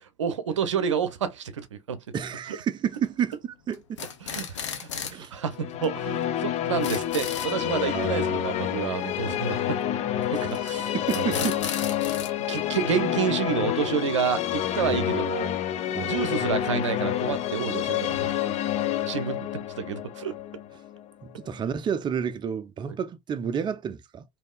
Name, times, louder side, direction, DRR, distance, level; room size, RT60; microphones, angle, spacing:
voice 1, 0.0-2.0 4.2-9.8 10.3-11.5 12.5-15.5 16.1-18.4 19.1-19.5 19.8-20.3 22.9-23.0, right 7 dB, 90° right, 0.5 m, -29 dB
voice 2, 2.1-4.0 5.1-5.3 7.9-8.4 10.3-10.7 10.9-11.6 14.9-15.1 15.9-16.2 21.3-24.2, right 8 dB, 30° right, 0.5 m, -30 dB
sound 1, 2.9-3.3 3.7-5.3 5.5-5.6 5.8-5.9 6.2-6.3 6.6-7.5 10.3-10.7 11.1-12.3, left 8 dB, 85° left, 0.7 m, -35 dB
sound 2, 5.5-21.6, left 11 dB, 45° left, 0.6 m, -28 dB
3.5 x 2.7 x 2.3 m
hypercardioid pair, 75°, 15 cm